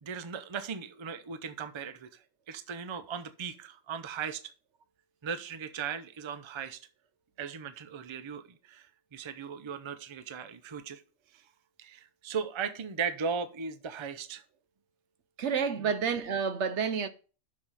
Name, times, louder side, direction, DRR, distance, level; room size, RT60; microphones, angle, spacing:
voice 1, 0.0-2.2 2.5-4.4 5.2-6.8 7.4-8.9 9.1-11.0 11.3-11.4 11.8-14.4 15.8-16.0, right 6 dB, 35° right, 0.5 m, -37 dB
voice 2, 15.4-17.1, right 6 dB, 75° right, 1.0 m, -29 dB
6.5 x 6.0 x 4.0 m
omnidirectional pair, 1.2 m